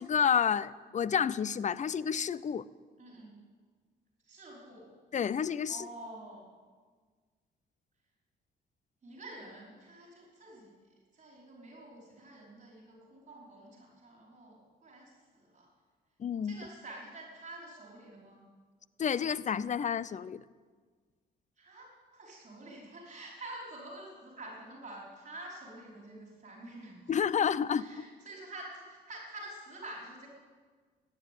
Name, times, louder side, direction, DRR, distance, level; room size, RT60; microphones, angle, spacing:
voice 1, 0.0-2.6 5.1-5.9 16.2-16.6 19.0-20.4 27.1-28.1, left 7 dB, 40° left, 0.5 m, -30 dB
voice 2, 3.0-3.3 4.3-4.9 5.7-6.4 9.0-10.7 11.1-15.1 15.5-15.7 16.4-18.4 21.6-27.1 27.8-30.3, right 1 dB, 40° right, 4.9 m, -48 dB
13.5 x 10.5 x 9.4 m
cardioid pair, 90°, 20 cm